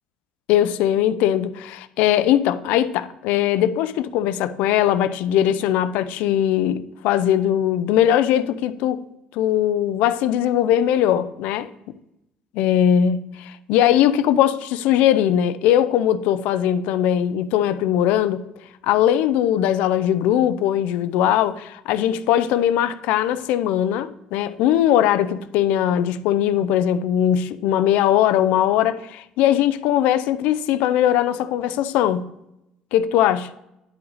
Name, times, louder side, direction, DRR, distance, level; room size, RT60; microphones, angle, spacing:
voice 1, 0.5-9.0 9.3-11.7 12.5-18.4 18.8-32.3 32.9-33.5, left 11 dB, 80° left, 0.4 m, -20 dB
9.6 x 5.6 x 4.0 m
cardioid pair, 130°, 2 cm